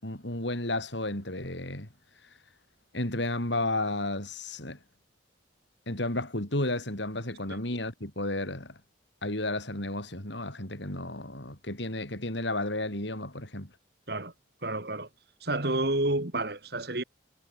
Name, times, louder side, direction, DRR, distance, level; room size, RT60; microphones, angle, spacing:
voice 1, 0.0-1.9 2.9-4.8 5.9-8.8 9.2-13.7, left 2 dB, 70° left, 5.4 m, -32 dB
voice 2, 14.6-15.1 15.4-17.0, right 2 dB, 55° right, 2.6 m, -29 dB
head